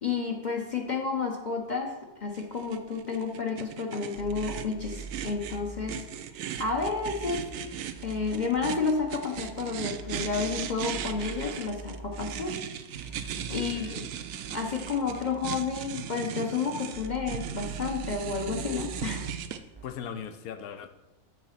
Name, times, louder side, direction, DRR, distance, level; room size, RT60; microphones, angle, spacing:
voice 1, 0.0-6.1 6.6-7.5 8.0-12.6 13.5-13.9 14.5-19.3, left 4 dB, 40° left, 0 dB, 0.7 m, -31 dB
sound 1, 2.3-19.6, right 9 dB, 70° right, 0.9 m, -38 dB
sound 2, 4.1-6.0 6.5-9.0 9.3-12.4 12.9-19.4 19.7-19.8, right 3 dB, 40° right, 0.4 m, -44 dB
voice 2, 13.5-14.1 19.8-20.9, left 7 dB, 85° left, 8 dB, 1.1 m, -39 dB
7.5 x 3.9 x 5.7 m, 0.98 s
omnidirectional pair, 1.5 m